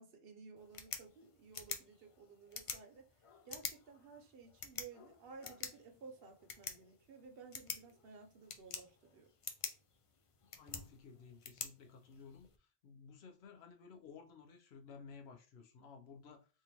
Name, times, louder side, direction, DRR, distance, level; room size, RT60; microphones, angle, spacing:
voice 1, 0.0-9.3, right 5 dB, 70° right, 0.9 m, -56 dB
sound 1, 0.6-12.6, left 6 dB, 45° left, 0.4 m, -49 dB
voice 2, 10.4-16.5, left 5 dB, 85° left, 0.9 m, -56 dB
3.5 x 2.8 x 2.9 m
omnidirectional pair, 1.0 m